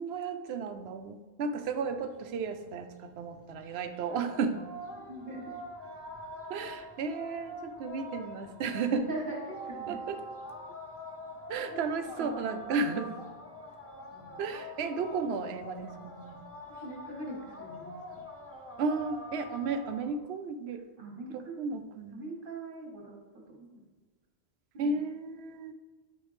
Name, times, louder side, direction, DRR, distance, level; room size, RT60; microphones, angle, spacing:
voice 1, 0.0-4.6 6.5-9.1 9.9-10.2 11.5-13.1 14.4-16.3 18.8-20.8 21.3-22.2 24.8-25.7, right 4 dB, 80° right, 9 dB, 0.8 m, -33 dB
sound 1, 1.5-20.1, equal, 15° left, 0.8 m, -45 dB
voice 2, 5.1-5.6 9.1-10.0 11.7-11.8 12.2-12.7 14.1-14.4 16.7-18.2 21.0-21.5 22.1-23.1 23.5-23.8 24.7-25.0, right 2 dB, 55° right, -2 dB, 1.4 m, -41 dB
9.3 x 3.3 x 3.1 m, 1.4 s
omnidirectional pair, 1.1 m